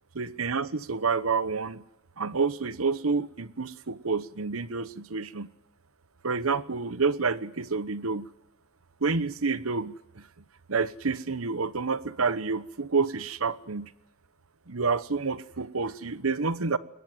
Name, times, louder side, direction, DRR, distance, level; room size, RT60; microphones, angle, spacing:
voice 1, 0.1-1.8 2.2-5.5 6.2-8.3 9.0-10.3 10.7-13.9 14.7-16.8, right 4 dB, 85° right, 16 dB, 1.1 m, -29 dB
22.5 x 19.5 x 9.3 m, 0.89 s
head